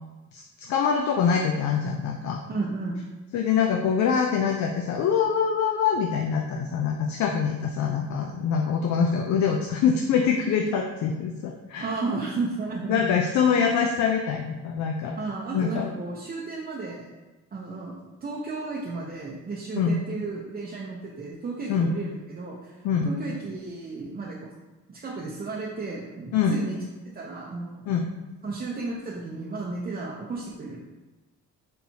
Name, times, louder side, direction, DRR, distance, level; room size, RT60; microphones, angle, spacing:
voice 1, 0.3-2.4 3.3-11.9 12.9-15.2 15.5-15.9 19.8-19.9 21.7-21.9 22.8-23.1 26.3-26.6 27.9-28.1, left 6 dB, 70° left, 1 dB, 0.5 m, -24 dB
voice 2, 2.5-3.0 11.8-13.1 15.2-17.1 17.5-17.9 18.2-22.8 23.0-24.5 24.9-26.8 27.1-27.8 28.4-30.8, right 3 dB, 30° right, -4 dB, 0.6 m, -33 dB
4.4 x 3.3 x 2.8 m, 1.1 s
cardioid pair, 90°, 30 cm